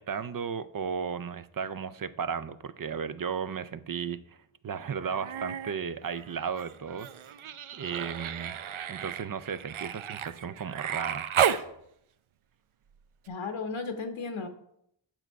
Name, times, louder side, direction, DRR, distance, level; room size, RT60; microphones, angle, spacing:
voice 1, 0.0-4.4 4.6-8.6 8.9-11.3, right 6 dB, 45° right, 14 dB, 0.5 m, -35 dB
Human voice, 5.0-5.7 6.1-11.7 13.3-13.4, right 9 dB, 90° right, 0.6 m, -33 dB
voice 2, 13.3-14.5, left 4 dB, 90° left, 7 dB, 1.0 m, -34 dB
8.9 x 6.0 x 4.6 m, 0.75 s
wide cardioid pair, 100°, 48 cm